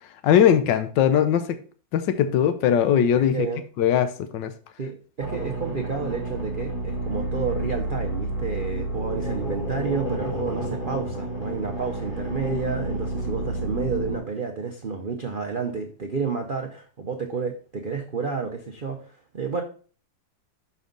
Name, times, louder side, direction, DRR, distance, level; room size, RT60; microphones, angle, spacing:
voice 1, 0.2-1.4 1.9-3.5 3.8-4.5, left 9 dB, 75° left, 10 dB, 1.4 m, -20 dB
voice 2, 3.1-3.6 4.8-19.6, right 5 dB, 60° right, 3 dB, 0.5 m, -30 dB
sound 1, 5.2-14.2, right 1 dB, 30° left, 2.0 m, -30 dB
6.6 x 5.6 x 3.8 m, 0.40 s
omnidirectional pair, 2.0 m